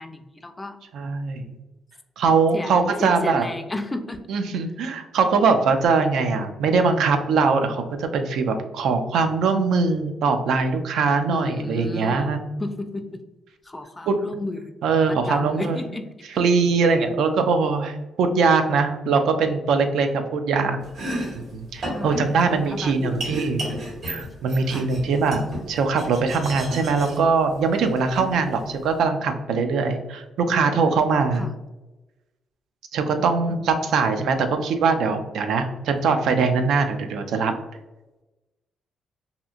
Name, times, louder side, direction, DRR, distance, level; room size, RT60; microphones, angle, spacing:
voice 1, 0.0-0.8 2.5-4.3 11.3-13.2 13.6-14.7 15.1-16.1 21.9-22.2 22.7-23.2 24.7-24.9 31.3-31.5 33.2-33.5, left 2 dB, 20° left, 7 dB, 0.3 m, -33 dB
voice 2, 0.9-1.4 2.2-3.4 4.3-12.4 14.1-14.4 14.8-15.8 16.4-20.8 21.3-23.6 24.0-31.4 32.9-37.5, right 4 dB, 80° right, 7 dB, 0.3 m, -22 dB
Domestic sounds home sounds, 20.8-29.0, equal, 65° right, 1.3 m, -34 dB
2.8 x 2.4 x 2.3 m, 1.1 s
cardioid pair, 85°, 0 cm